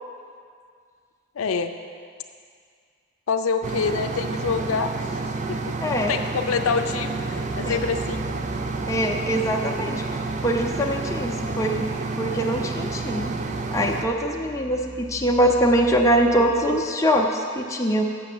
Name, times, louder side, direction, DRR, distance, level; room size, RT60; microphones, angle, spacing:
voice 1, 1.4-1.7 3.3-4.9 5.5-5.6 6.1-8.2, left 5 dB, 85° left, 7 dB, 0.5 m, -26 dB
sound 1, 3.6-14.1, right 3 dB, 35° right, 0.5 m, -29 dB
voice 2, 5.8-6.1 7.6-7.8 8.9-11.9 12.2-13.3 13.7-18.0, equal, 15° left, 0 dB, 0.7 m, -23 dB
sound 2, 6.4-16.7, left 1 dB, 60° right, 1.5 m, -42 dB
7.0 x 6.7 x 7.8 m, 2.2 s
head